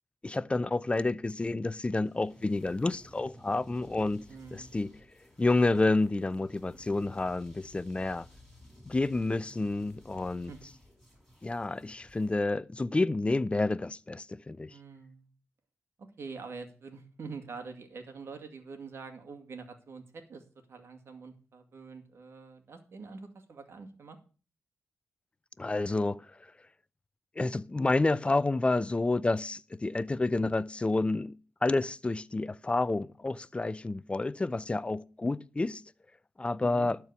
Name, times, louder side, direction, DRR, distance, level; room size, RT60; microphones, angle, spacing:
voice 1, 0.2-4.9 5.4-8.3 8.9-10.5 11.4-14.7 25.6-26.3 27.4-35.8 36.4-37.0, left 2 dB, 25° left, 0.5 m, -29 dB
sound 1, 2.0-12.4, left 1 dB, ahead, 4.8 m, -55 dB
voice 2, 4.3-4.7 10.5-10.6 14.7-15.3 16.0-24.2 36.6-36.9, right 4 dB, 65° right, 2.3 m, -45 dB
12.0 x 4.6 x 8.2 m
cardioid pair, 60°, 5 cm